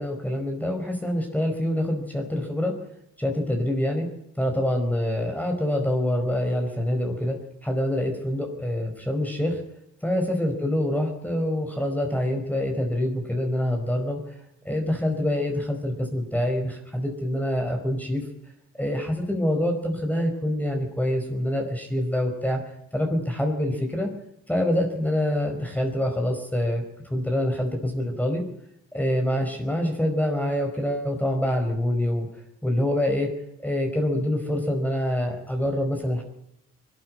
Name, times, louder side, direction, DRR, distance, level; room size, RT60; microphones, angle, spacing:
voice 1, 0.0-2.8 3.2-4.1 4.4-9.6 10.0-14.3 14.6-18.2 18.7-22.6 22.9-24.1 24.5-26.8 27.1-28.4 28.9-32.3 32.6-33.3 33.6-36.2, left 1 dB, 5° left, 3 dB, 4.8 m, -26 dB
21.0 x 12.5 x 9.7 m, 0.81 s
cardioid pair, 90°, 30 cm